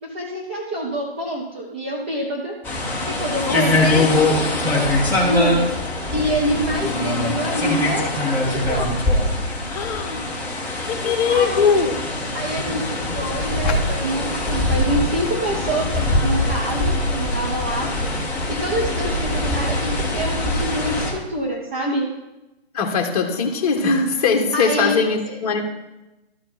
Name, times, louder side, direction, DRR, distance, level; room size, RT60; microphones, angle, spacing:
voice 1, 0.0-2.6 3.1-3.8 5.1-5.7 6.1-8.9 10.9-11.9 12.3-17.9 18.5-22.1 24.5-25.0 25.3-25.4, right 1 dB, 10° right, -3 dB, 0.4 m, -26 dB
sound 1, 2.6-21.1, left 2 dB, 5° left, 1.1 m, -22 dB
voice 2, 3.4-4.1 5.0-5.3 9.7-10.3 10.7-12.0 13.6-13.8 22.7-25.6, left 5 dB, 35° left, 2 dB, 1.3 m, -21 dB
12.5 x 4.3 x 4.3 m, 0.98 s
figure-of-eight pair, 135°, 32 cm